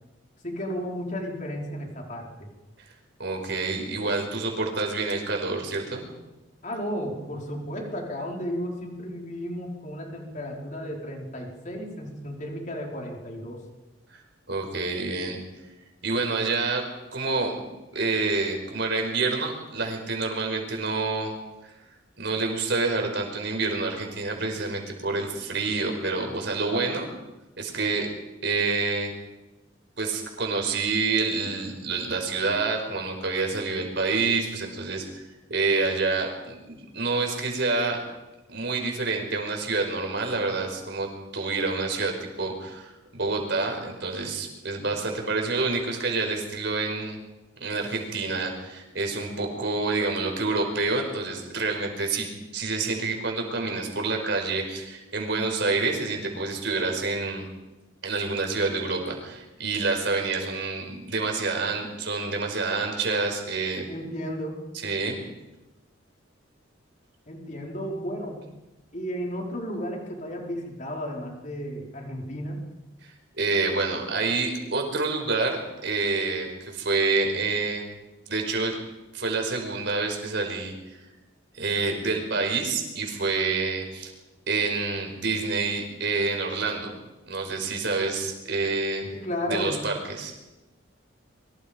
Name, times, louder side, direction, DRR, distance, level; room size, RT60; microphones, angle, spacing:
voice 1, 0.4-2.5 6.6-13.6 63.9-64.6 67.3-68.4 68.9-72.6 89.1-89.8, equal, 40° left, 0 dB, 4.6 m, -33 dB
voice 2, 3.2-6.1 14.5-15.4 16.0-16.8 17.1-17.6 17.9-21.3 21.6-21.7 22.2-27.1 27.6-28.1 28.4-29.1 30.0-38.0 38.5-47.2 47.6-57.5 58.0-63.9 64.8-65.2 73.0-77.8 78.3-78.8 79.1-80.7 81.5-84.1 84.5-86.9 87.3-89.1 89.5-90.3, right 3 dB, 55° right, 2 dB, 5.2 m, -28 dB
26.5 x 24.0 x 5.3 m, 1.0 s
head